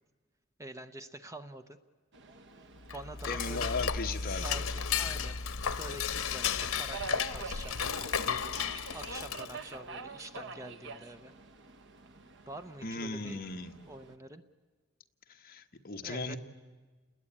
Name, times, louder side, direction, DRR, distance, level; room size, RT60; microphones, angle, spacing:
voice 1, 0.6-1.8 2.9-3.8 4.3-5.4 5.8-7.8 8.9-11.3 12.5-13.4 13.9-14.4 16.0-16.4, right 2 dB, 15° right, 9 dB, 0.8 m, -46 dB
Subway metro underground, 2.1-14.2, right 4 dB, 60° right, 1.1 m, -47 dB
Dishes pots and pans / Cutlery silverware, 2.8-9.7, left 7 dB, 85° left, 0.9 m, -34 dB
voice 2, 3.3-4.7 12.8-13.7 15.3-16.4, left 3 dB, 45° left, 5 dB, 1.3 m, -37 dB
29.0 x 20.5 x 8.8 m, 1.4 s
head